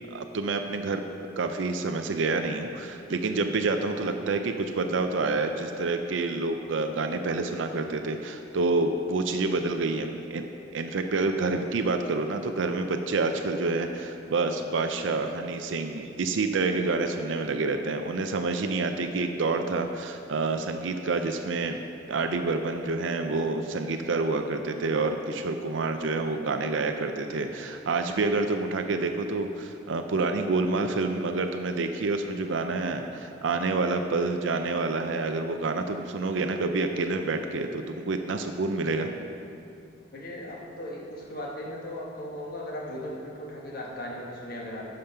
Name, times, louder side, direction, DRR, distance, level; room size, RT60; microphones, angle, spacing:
voice 1, 0.1-1.0 1.4-10.5 10.7-21.8 22.1-39.1, right 3 dB, 80° right, 6 dB, 0.5 m, -28 dB
voice 2, 40.1-44.8, left 1 dB, 50° left, -3 dB, 1.5 m, -37 dB
11.5 x 5.2 x 5.6 m, 2.5 s
head